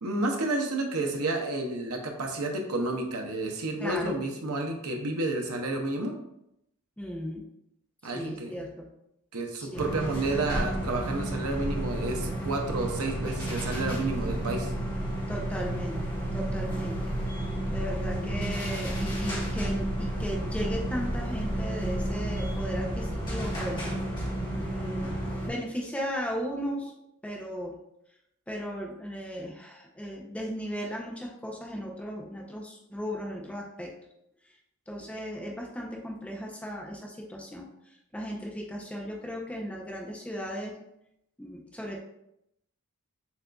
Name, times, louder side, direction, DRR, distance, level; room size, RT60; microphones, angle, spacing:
voice 1, 0.0-6.1 8.0-8.5 9.3-14.7, right 2 dB, 85° right, 2 dB, 0.7 m, -30 dB
voice 2, 3.8-4.2 7.0-7.4 8.0-8.9 9.6-9.8 15.3-16.0 16.3-17.1 17.7-23.9 24.5-25.1 25.5-26.9 27.2-27.8 28.5-33.9 34.9-37.7 38.1-40.8 41.4-42.0, equal, 5° left, -1 dB, 0.5 m, -36 dB
sound 1, 9.7-25.5, right 1 dB, 20° left, 1.2 m, -31 dB
7.0 x 2.5 x 2.3 m, 0.81 s
head